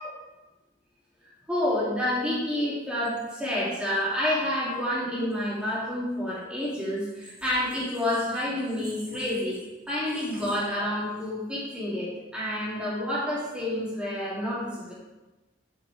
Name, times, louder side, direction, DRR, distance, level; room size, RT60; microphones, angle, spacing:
voice 1, 1.5-9.6 9.9-14.9, left 1 dB, 5° right, -9 dB, 3.4 m, -29 dB
10.5 x 7.1 x 3.7 m, 1.1 s
head